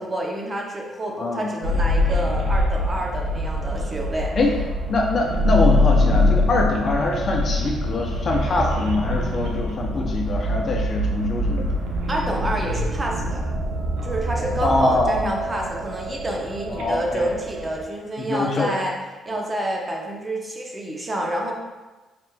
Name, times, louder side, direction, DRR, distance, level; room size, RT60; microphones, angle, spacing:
voice 1, 0.0-4.4 12.1-13.5 14.0-18.9 19.3-21.5, right 1 dB, 25° right, 0 dB, 0.7 m, -28 dB
voice 2, 1.2-1.5 4.4-4.5 4.9-11.7 14.6-15.3 16.7-17.3 18.2-18.7, left 2 dB, 50° left, 0 dB, 0.6 m, -23 dB
sound 1, 1.6-17.8, left 1 dB, 85° right, 0.5 m, -24 dB
5.0 x 3.0 x 2.2 m, 1.2 s
cardioid pair, 90°, 0 cm